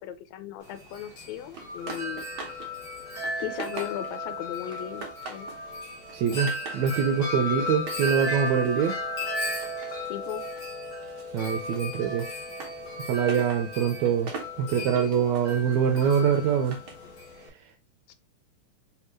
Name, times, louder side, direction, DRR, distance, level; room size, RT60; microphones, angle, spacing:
voice 1, 0.0-2.2 3.4-5.5 10.1-10.5 18.1-18.2, left 11 dB, 80° left, 1.8 m, -37 dB
Wind chime, 0.6-17.5, left 1 dB, 50° left, 2.0 m, -35 dB
sound 1, 1.5-2.7 3.0-4.3 4.7-5.6 6.0-6.9 7.7-10.7 11.0-17.1, right 4 dB, 60° right, 1.5 m, -43 dB
voice 2, 6.1-8.9 11.3-12.3 13.0-14.3 14.6-16.8, right 7 dB, 80° right, 1.8 m, -24 dB
4.3 x 3.4 x 3.0 m
omnidirectional pair, 3.4 m